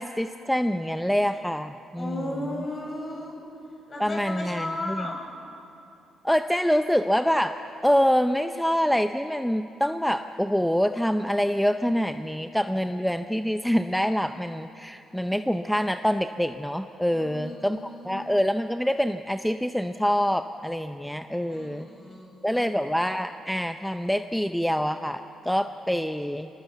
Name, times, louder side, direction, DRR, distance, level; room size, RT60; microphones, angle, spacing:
voice 1, 0.0-2.6 4.0-5.1 6.2-7.6 7.8-21.9 22.4-26.5, equal, ahead, 8 dB, 0.6 m, -26 dB
voice 2, 2.0-3.4 3.9-5.2 17.1-18.3 21.4-22.6, left 1 dB, 35° left, 0 dB, 7.2 m, -35 dB
25.5 x 19.5 x 8.0 m, 2.8 s
cardioid pair, 90°, 0 cm